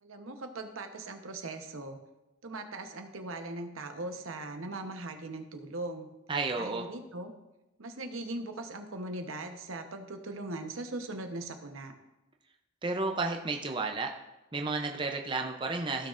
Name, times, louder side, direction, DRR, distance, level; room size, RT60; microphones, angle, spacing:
voice 1, 0.0-2.0 2.4-6.1 6.6-7.3 7.8-11.9, right 2 dB, 80° right, 6 dB, 1.0 m, -40 dB
voice 2, 6.3-6.9 12.8-14.1 14.5-16.1, right 3 dB, 25° right, 3 dB, 0.5 m, -32 dB
15.5 x 6.3 x 2.5 m, 0.97 s
head